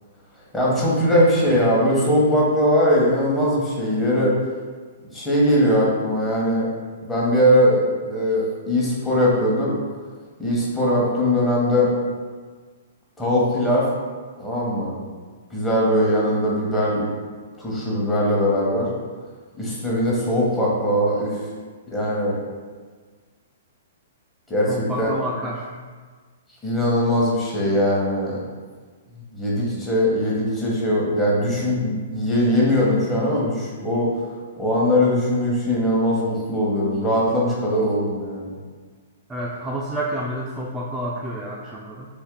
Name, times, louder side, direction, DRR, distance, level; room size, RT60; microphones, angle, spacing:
voice 1, 0.5-4.3 5.1-6.7 7.0-9.7 10.4-11.9 13.2-13.9 14.4-15.0 15.5-17.0 17.6-18.9 19.6-21.5 21.9-22.4 24.5-25.2 26.6-28.4 29.1-34.1 34.6-38.5, equal, 15° left, -6 dB, 1.0 m, -20 dB
voice 2, 24.7-25.7 39.3-42.1, right 1 dB, 10° right, -4 dB, 0.3 m, -29 dB
2.7 x 2.6 x 3.6 m, 1.5 s
hypercardioid pair, 125°, 0 cm